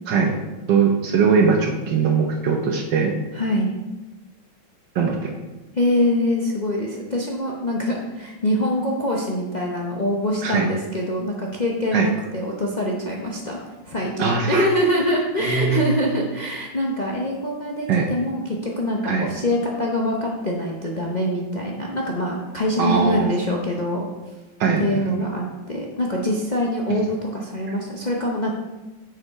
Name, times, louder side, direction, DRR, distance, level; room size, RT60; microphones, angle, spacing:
voice 1, 0.7-3.1 4.9-5.3 10.4-10.7 11.9-12.1 14.2-14.6 15.4-15.9 17.9-18.1 19.0-19.3 22.8-23.4 24.6-25.0 26.9-27.0, right 5 dB, 70° right, 2 dB, 1.4 m, -20 dB
voice 2, 3.3-3.7 5.7-13.6 13.8-24.0 24.8-28.5, left 1 dB, 45° left, -2 dB, 0.5 m, -24 dB
6.9 x 6.4 x 4.7 m, 1.1 s
omnidirectional pair, 2.1 m